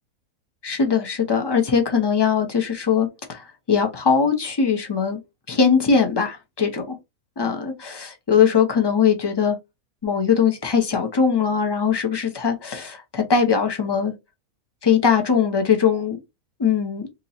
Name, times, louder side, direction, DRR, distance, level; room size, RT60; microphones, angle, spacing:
voice 1, 0.6-5.2 5.5-6.9 7.4-9.6 10.0-14.1 14.8-16.2 16.6-17.1, left 6 dB, 35° left, 0.4 m, -21 dB
2.9 x 2.6 x 4.0 m
omnidirectional pair, 1.5 m